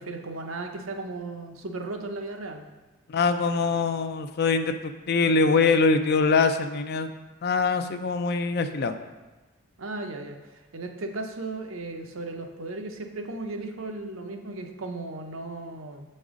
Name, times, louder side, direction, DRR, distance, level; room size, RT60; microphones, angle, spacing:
voice 1, 0.0-2.6 9.8-16.0, right 2 dB, 70° right, 4 dB, 0.7 m, -36 dB
voice 2, 3.1-7.1 7.4-8.9, left 4 dB, 50° left, 9 dB, 0.4 m, -23 dB
7.0 x 5.3 x 3.7 m, 1.2 s
head